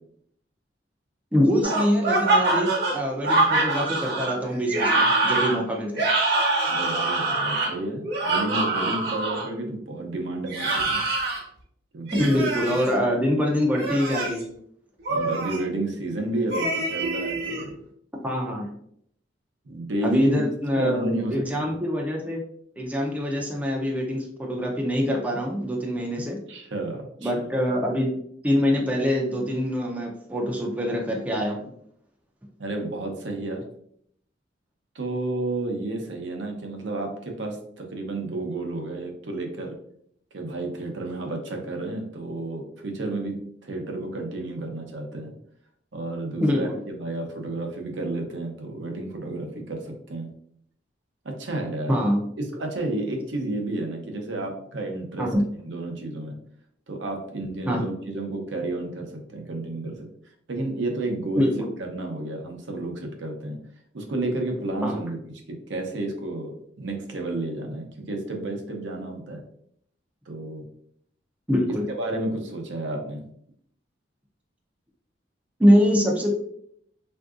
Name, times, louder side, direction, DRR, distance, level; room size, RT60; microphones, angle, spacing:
voice 1, 1.3-6.1 12.1-14.5 18.2-18.7 20.0-22.4 22.8-26.4 27.2-28.2 28.4-31.7 46.4-46.8 51.9-52.2 55.2-55.4 57.7-57.8 61.4-61.7 64.8-65.0 71.5-71.8 75.6-76.3, equal, 10° right, -1 dB, 0.4 m, -24 dB
sound 1, 1.6-9.5 10.5-11.4 12.1-12.9 13.7-14.4 15.1-15.6 16.5-17.6, right 2 dB, 55° right, 1.0 m, -24 dB
voice 2, 6.7-11.0 11.9-12.4 12.7-12.8 15.1-17.8 19.7-20.4 20.8-21.7 26.5-27.4 32.6-33.6 34.9-39.7 40.3-43.3 43.6-45.3 45.9-50.3 51.2-51.9 52.4-55.3 55.7-56.3 56.9-60.1 60.5-61.5 61.9-63.6 63.9-65.2 65.7-66.5 66.8-69.4 70.3-70.6 72.0-73.2, right 2 dB, 70° right, 2 dB, 0.6 m, -31 dB
3.6 x 2.6 x 2.4 m, 0.68 s
head